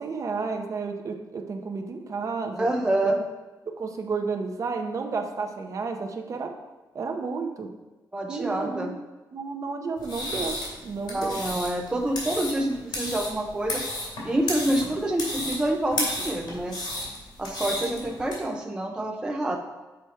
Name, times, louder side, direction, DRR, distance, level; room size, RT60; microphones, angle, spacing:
voice 1, 0.0-2.7 3.8-6.5 6.9-7.7 8.3-9.0 9.3-11.4, right 4 dB, 40° right, 4 dB, 0.7 m, -32 dB
voice 2, 2.5-3.2 8.1-8.9 11.0-13.8 14.2-16.8 17.4-19.6, right 1 dB, 10° right, 2 dB, 0.4 m, -27 dB
sound 1, 10.0-18.3, left 1 dB, 75° left, 2.5 m, -33 dB
7.0 x 4.8 x 4.4 m, 1.1 s
wide cardioid pair, 165°, 8 cm